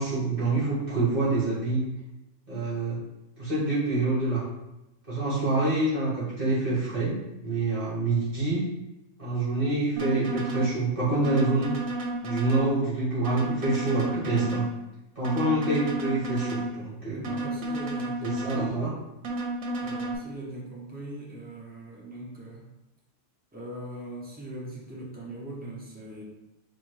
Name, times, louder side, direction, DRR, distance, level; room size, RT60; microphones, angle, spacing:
voice 1, 0.0-1.8 2.5-3.0 3.4-4.4 5.1-7.1 7.4-8.6 9.2-11.7 12.2-14.7 15.2-17.2 18.2-18.9, right 2 dB, 40° right, -10 dB, 1.7 m, -26 dB
sound 1, 10.0-10.7 11.2-12.7 13.2-14.7 15.2-16.7 17.2-18.7 19.2-20.2, right 2 dB, 75° right, 1.1 m, -31 dB
voice 2, 17.1-19.0 19.8-22.7 23.5-26.2, right 1 dB, 10° right, -4 dB, 0.8 m, -40 dB
4.3 x 2.5 x 4.7 m, 0.95 s
omnidirectional pair, 1.4 m